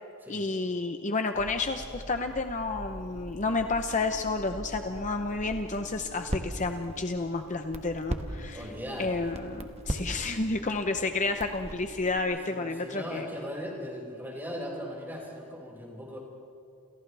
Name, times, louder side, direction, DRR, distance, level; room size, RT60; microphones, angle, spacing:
voice 1, 0.3-8.6 9.0-13.3, left 3 dB, 35° left, 6 dB, 0.8 m, -30 dB
Crackle, 1.3-12.2, right 1 dB, 30° right, 1.4 m, -40 dB
sound 1, 2.9-12.8, right 3 dB, 75° right, 3.0 m, -52 dB
voice 2, 8.5-9.2 12.5-16.2, equal, 10° right, -3 dB, 5.6 m, -38 dB
29.5 x 28.5 x 3.4 m, 2.8 s
head